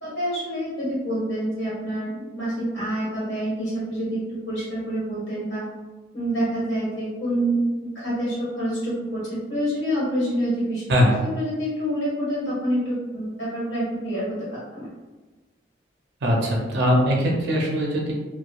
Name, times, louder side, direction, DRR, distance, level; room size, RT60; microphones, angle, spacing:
voice 1, 0.0-5.6 6.1-10.8 11.3-14.9, right 1 dB, 60° left, -8 dB, 1.4 m, -27 dB
voice 2, 16.2-18.1, equal, 60° right, -2 dB, 0.5 m, -21 dB
2.9 x 2.0 x 2.3 m, 1.2 s
head